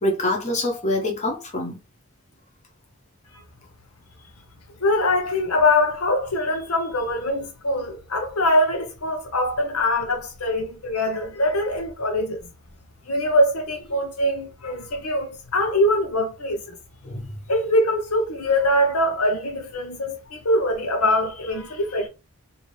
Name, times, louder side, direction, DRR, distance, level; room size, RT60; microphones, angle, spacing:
voice 1, 0.0-1.8 17.0-17.3, left 1 dB, 35° left, 1.1 m, -25 dB
voice 2, 4.8-12.5 13.1-16.8 17.5-22.1, left 1 dB, 85° left, 0.9 m, -23 dB
3.0 x 2.7 x 3.2 m
head